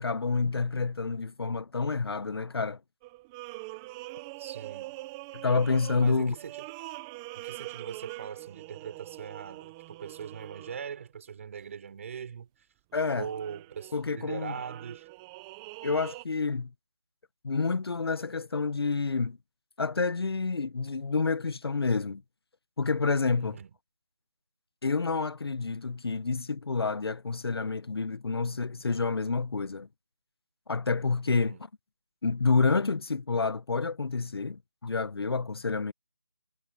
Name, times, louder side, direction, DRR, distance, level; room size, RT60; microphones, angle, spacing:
voice 1, 0.0-2.8 5.3-6.3 12.9-13.3 13.9-14.6 15.8-16.7 17.4-19.4 19.8-22.2 22.8-23.6 24.8-29.9 30.7-31.5 32.2-35.9, left 4 dB, 60° left, 1.0 m, -28 dB
sound 1, 3.0-11.0 11.6-11.7 13.0-16.2, right 21 dB, 5° right, 0.7 m, -44 dB
voice 2, 4.4-5.0 6.0-6.9 7.3-12.5 13.1-15.1 23.4-23.7 31.3-31.7, right 7 dB, 30° right, 5.5 m, -41 dB
figure-of-eight pair, 165°, 15 cm